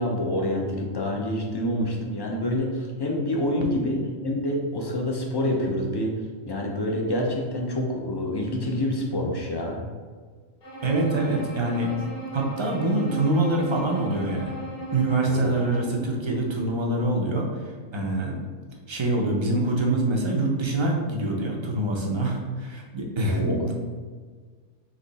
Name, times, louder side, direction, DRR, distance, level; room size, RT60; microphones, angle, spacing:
voice 1, 0.0-6.1 6.5-9.8 15.1-15.5 23.2-23.7, left 1 dB, 35° left, 0 dB, 0.4 m, -27 dB
Bowed string instrument, 10.6-16.0, right 2 dB, 55° left, 1.5 m, -37 dB
voice 2, 10.8-11.9 12.3-14.5 14.9-17.6 17.9-18.4 18.9-23.7, right 2 dB, 35° right, 0 dB, 0.5 m, -25 dB
4.0 x 3.0 x 4.1 m, 1.5 s
omnidirectional pair, 1.2 m